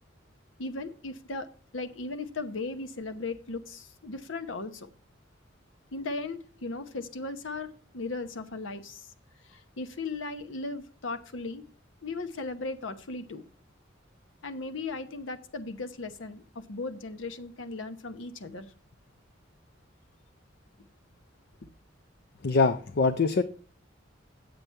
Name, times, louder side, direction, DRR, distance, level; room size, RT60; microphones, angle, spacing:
voice 1, 0.6-1.5 1.7-4.9 5.9-9.1 9.4-11.6 12.0-13.5 14.4-18.7, left 3 dB, 80° left, 0.9 m, -37 dB
voice 2, 22.4-23.4, left 4 dB, 55° left, 0.5 m, -23 dB
8.5 x 7.8 x 4.5 m
head